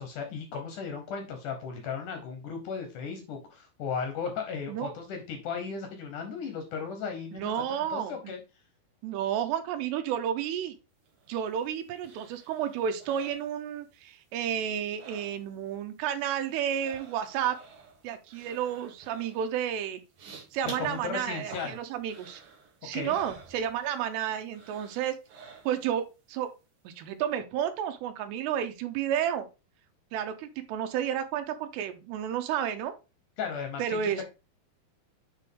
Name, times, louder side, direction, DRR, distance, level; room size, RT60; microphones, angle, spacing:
voice 1, 0.0-8.4 20.6-21.8 22.9-23.2 33.4-34.1, left 6 dB, 70° left, 5 dB, 2.0 m, -36 dB
voice 2, 7.3-8.3 9.0-10.8 11.3-17.6 18.0-20.0 20.5-22.4 22.8-25.2 25.6-26.5 26.8-29.5 30.1-32.9 33.8-34.2, right 9 dB, 85° right, 7 dB, 3.0 m, -31 dB
sound 1, 11.1-14.1 14.4-15.7 16.0-24.1 24.5-26.0 26.4-26.5, right 4 dB, 60° right, 2.7 m, -51 dB
8.1 x 3.8 x 3.6 m, 0.29 s
omnidirectional pair, 4.8 m